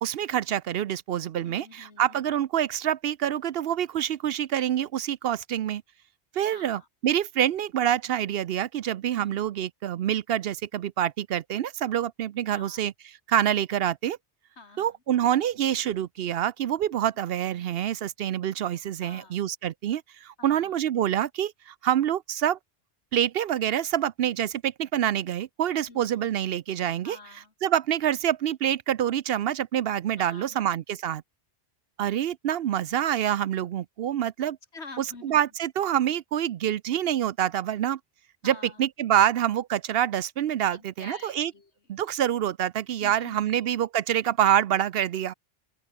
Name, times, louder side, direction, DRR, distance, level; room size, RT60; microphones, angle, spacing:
voice 1, 0.0-5.8 6.3-12.9 13.3-14.2 14.8-22.6 23.1-27.2 27.6-31.2 32.0-34.6 35.0-38.0 38.4-41.5 41.9-45.3, right 10 dB, 70° right, 0.8 m, -26 dB
voice 2, 1.4-2.3 6.5-6.9 9.1-9.4 12.5-12.8 14.6-14.9 19.0-19.4 20.4-20.8 25.9-26.4 27.0-27.5 30.2-30.7 34.4-35.4 38.4-38.8 40.7-41.7 43.0-43.6, left 3 dB, 80° left, 2.8 m, -47 dB
open air
omnidirectional pair, 1.1 m